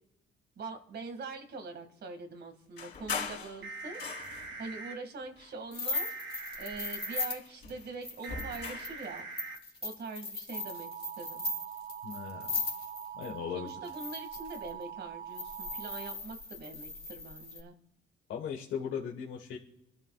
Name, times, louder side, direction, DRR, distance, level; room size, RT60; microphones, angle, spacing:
voice 1, 0.6-4.0 4.6-6.1 6.6-9.3 9.8-10.9 11.2-11.5 13.5-17.8, right 3 dB, 60° right, 6 dB, 2.3 m, -43 dB
sound 1, 2.8-4.6 5.3-6.5 6.8-9.0, left 5 dB, 55° left, 3.5 m, -41 dB
sound 2, 3.6-4.9 5.9-7.3 8.2-9.6 10.5-16.1, right 6 dB, 80° right, 2.6 m, -43 dB
sound 3, 5.7-13.3 13.8-14.7 15.3-17.6, left 3 dB, 30° left, 2.9 m, -38 dB
voice 2, 12.0-12.5 13.1-13.7 18.3-19.6, left 7 dB, 80° left, -1 dB, 1.5 m, -37 dB
26.0 x 12.0 x 2.5 m, 0.80 s
cardioid pair, 90°, 20 cm